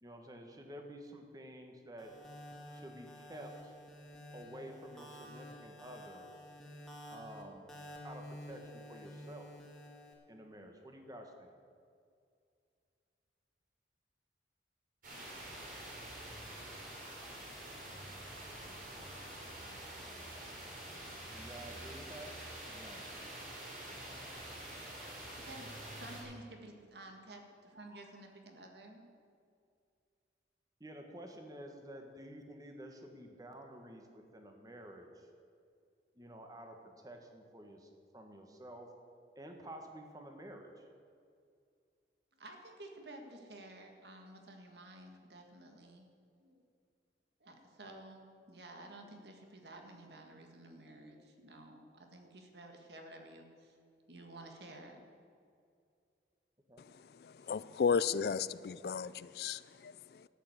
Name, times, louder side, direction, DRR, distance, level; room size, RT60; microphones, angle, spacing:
voice 1, 0.0-2.1 2.7-3.7 4.3-6.3 7.1-7.7 8.0-9.5 10.3-11.5 21.3-22.4 22.7-23.0 30.8-35.3 36.2-38.9 39.3-40.8 56.7-56.8, right 1 dB, 20° right, 4 dB, 1.4 m, -50 dB
sound 1, 2.0-10.1, equal, 5° left, 1.9 m, -51 dB
sound 2, 15.0-26.2, right 1 dB, 50° right, 4.3 m, -47 dB
voice 2, 25.4-29.1 42.3-46.1 46.4-46.6 47.4-53.8 54.1-55.0, right 1 dB, 70° right, 3 dB, 1.9 m, -52 dB
voice 3, 57.2-60.3, left 6 dB, 60° left, 17 dB, 0.4 m, -34 dB
13.0 x 8.5 x 8.1 m, 2.3 s
head